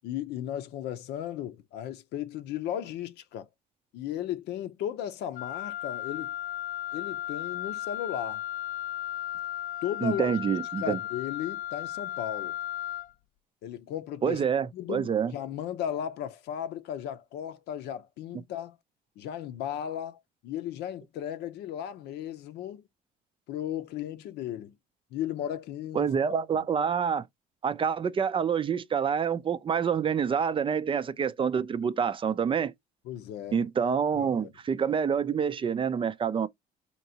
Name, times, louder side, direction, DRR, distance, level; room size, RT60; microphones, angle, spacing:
voice 1, 0.0-3.5 3.9-6.3 6.9-8.4 9.8-10.3 10.8-12.6 13.6-14.4 14.7-18.8 19.2-22.8 23.5-24.8 25.1-26.1 26.5-26.6 33.0-33.6 34.1-34.5, left 10 dB, 80° left, 0.7 m, -35 dB
Wind instrument woodwind instrument, 5.4-13.1, left 13 dB, 55° left, 0.4 m, -35 dB
voice 2, 10.0-11.0 14.2-15.3 25.9-27.3 27.6-32.7 33.5-36.5, right 7 dB, 30° right, 0.4 m, -27 dB
4.5 x 2.9 x 2.7 m
cardioid pair, 110°, 17 cm